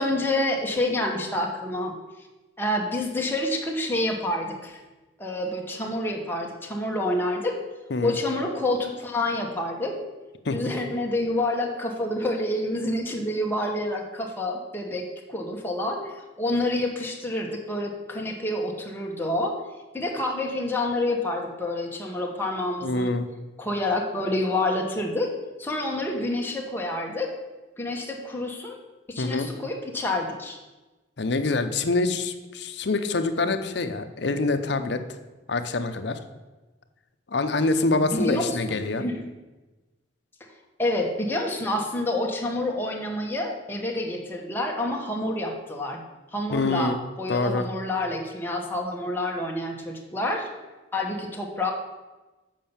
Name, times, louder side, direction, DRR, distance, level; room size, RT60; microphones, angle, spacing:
voice 1, 0.0-1.9 2.6-4.8 5.2-7.6 8.0-10.0 10.5-19.5 19.9-23.1 23.6-25.3 25.6-27.3 27.8-28.8 29.1-30.6 38.0-39.2 40.8-46.0 46.3-50.5 50.9-51.7, left 1 dB, 10° left, 0 dB, 1.2 m, -28 dB
voice 2, 22.8-23.3 29.2-29.5 31.2-35.0 35.5-36.2 37.3-39.0 46.5-47.0 47.3-47.6, left 3 dB, 60° left, 8 dB, 0.7 m, -25 dB
7.5 x 5.4 x 7.0 m, 1.2 s
head